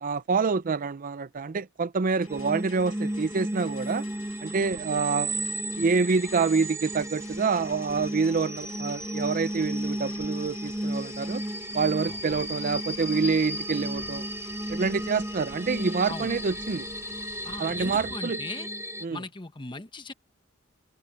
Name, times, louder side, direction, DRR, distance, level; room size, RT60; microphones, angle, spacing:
voice 1, 0.0-4.0 4.4-5.3 5.8-11.4 11.7-14.2 14.7-16.9 17.6-18.4 19.0-19.2, right 4 dB, 40° right, 0.5 m, -27 dB
sound 1, 2.1-18.2, left 5 dB, 80° left, 5.1 m, -50 dB
sound 2, 2.3-19.1, right 1 dB, 15° right, 1.0 m, -34 dB
voice 2, 17.4-18.7 19.1-20.1, left 3 dB, 25° left, 1.1 m, -39 dB
head